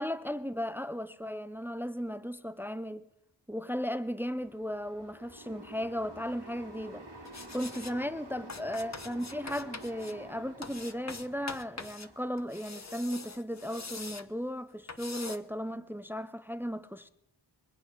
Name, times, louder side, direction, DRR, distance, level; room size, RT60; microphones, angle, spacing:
voice 1, 0.0-3.1 3.5-7.1 7.5-17.1, equal, 5° right, 0.7 m, -36 dB
sound 1, 4.4-12.3, right 1 dB, 65° right, 2.8 m, -50 dB
sound 2, 5.8-11.5, right 3 dB, 80° right, 2.4 m, -60 dB
sound 3, 7.2-7.9 8.5-10.1 10.6-12.1 12.4-14.3 14.9-15.4, left 4 dB, 35° left, 1.0 m, -43 dB
23.5 x 8.8 x 6.0 m
wide cardioid pair, 50°, 44 cm